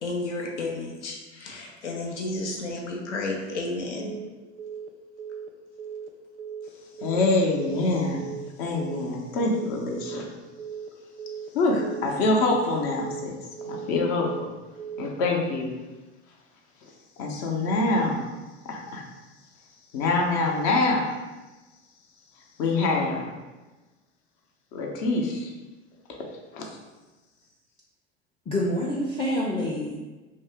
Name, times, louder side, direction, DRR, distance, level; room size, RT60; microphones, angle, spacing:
voice 1, 0.0-4.2, left 2 dB, 85° left, -1 dB, 0.7 m, -32 dB
Telephone, 4.0-4.3 4.6-4.9 5.2-5.5 5.8-6.1 6.4-6.7 7.0-7.3 7.6-7.9 8.2-8.5 8.8-9.1 9.4-9.7 10.0-10.3 10.6-10.9 11.2-11.5 11.8-12.1 12.4-12.7 13.0-13.3 13.6-13.9 14.2-14.5 14.8-15.1, right 7 dB, 40° right, 0.4 m, -37 dB
voice 2, 7.0-8.3 8.6-10.3 11.5-13.4 13.6-14.5 15.0-15.7 17.2-18.3 18.6-19.0 19.9-21.2 22.6-23.3 24.7-25.5 26.5-26.7, left 2 dB, 55° left, 1 dB, 0.8 m, -25 dB
voice 3, 28.5-30.0, left 1 dB, 15° left, -4 dB, 0.5 m, -27 dB
2.8 x 2.6 x 3.4 m, 1.2 s
hypercardioid pair, 80°, 34 cm